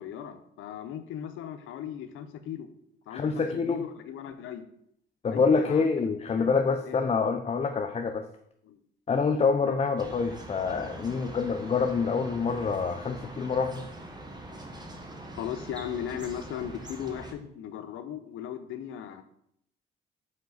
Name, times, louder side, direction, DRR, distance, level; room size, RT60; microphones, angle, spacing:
voice 1, 0.0-2.7 3.1-4.7 5.3-6.0 6.3-6.5 6.8-7.2 8.6-8.8 9.6-9.7 15.3-19.2, left 9 dB, 85° left, 9 dB, 0.7 m, -37 dB
voice 2, 3.1-3.8 5.2-8.2 9.1-13.9, left 5 dB, 30° left, 6 dB, 0.5 m, -26 dB
sound 1, 10.0-17.3, right 1 dB, 20° right, 1.1 m, -43 dB
5.3 x 5.0 x 4.0 m, 0.71 s
cardioid pair, 90°, 20 cm